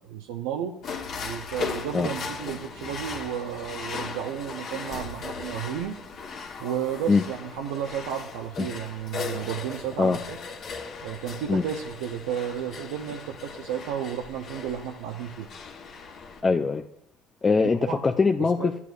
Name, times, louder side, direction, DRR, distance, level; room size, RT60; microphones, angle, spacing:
voice 1, 0.1-0.7 1.2-6.0 6.6-10.4 11.0-15.5 17.8-18.0 18.6-18.7, right 9 dB, 80° right, 3 dB, 0.6 m, -32 dB
sound 1, 0.8-16.4, left 5 dB, 50° left, 1.2 m, -38 dB
voice 2, 16.4-16.8 17.4-18.8, left 4 dB, 25° left, 5 dB, 0.4 m, -22 dB
12.0 x 8.3 x 2.5 m, 0.79 s
supercardioid pair, 85°, 0 cm